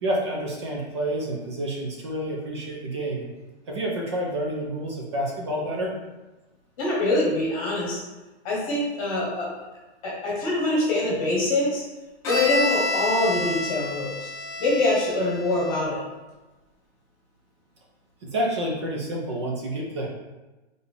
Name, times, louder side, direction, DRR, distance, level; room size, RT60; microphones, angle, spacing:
voice 1, 0.0-3.3 3.7-5.9 18.2-20.1, right 1 dB, 25° right, -1 dB, 0.5 m, -29 dB
voice 2, 6.8-8.0 8.4-9.5 10.0-11.8 12.3-14.3 14.6-16.0, left 2 dB, 30° left, -5 dB, 1.3 m, -24 dB
Bowed string instrument, 12.2-16.0, left 2 dB, 10° left, 0.7 m, -29 dB
3.9 x 3.4 x 3.6 m, 1.1 s
hypercardioid pair, 170°, 35 cm